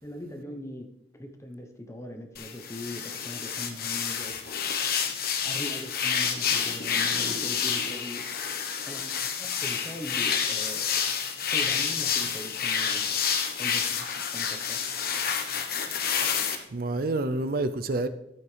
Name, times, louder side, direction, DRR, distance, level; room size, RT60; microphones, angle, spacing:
voice 1, 0.0-0.9 1.2-4.3 5.4-8.3 8.9-10.9 11.5-13.2 13.6-14.8, left 1 dB, 15° left, 1.0 m, -40 dB
sound 1, 2.4-16.6, left 7 dB, 55° left, 1.1 m, -29 dB
voice 2, 15.8-16.4 16.7-18.1, right 2 dB, 55° right, 0.5 m, -29 dB
12.5 x 8.6 x 3.3 m
head